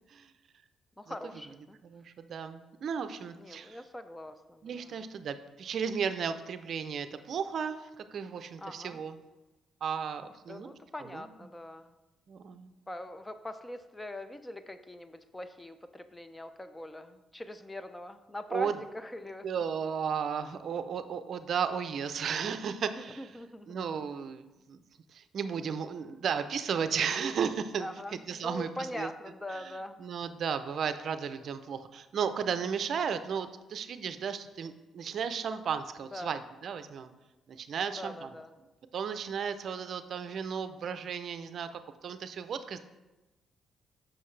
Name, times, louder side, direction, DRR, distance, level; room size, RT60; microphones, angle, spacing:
voice 1, 1.0-1.8 3.4-5.0 8.6-9.0 10.5-11.9 12.9-19.5 23.0-23.8 27.8-30.0 36.1-36.3 37.7-38.5, left 1 dB, 15° left, 10 dB, 0.5 m, -42 dB
voice 2, 1.8-3.8 4.6-9.2 9.8-10.7 11.1-11.3 12.3-12.7 18.5-18.8 19.4-23.3 23.7-24.8 25.1-27.9 28.3-29.1 29.5-29.7 30.0-37.1 37.5-38.3 38.9-42.8, right 7 dB, 60° right, 10 dB, 0.5 m, -34 dB
7.7 x 5.9 x 3.2 m, 1.1 s
cardioid pair, 90°, 0 cm